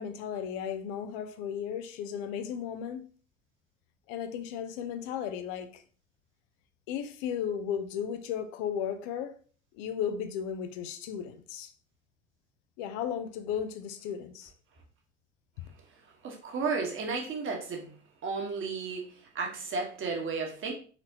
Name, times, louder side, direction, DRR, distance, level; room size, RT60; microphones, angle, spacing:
voice 1, 0.0-3.1 4.1-5.8 6.9-9.3 9.7-11.7 12.8-14.5, left 8 dB, 55° left, 0.7 m, -35 dB
voice 2, 16.2-17.9 18.2-20.7, right 4 dB, 35° right, 1.4 m, -33 dB
4.2 x 4.1 x 2.9 m
figure-of-eight pair, 65°, 35 cm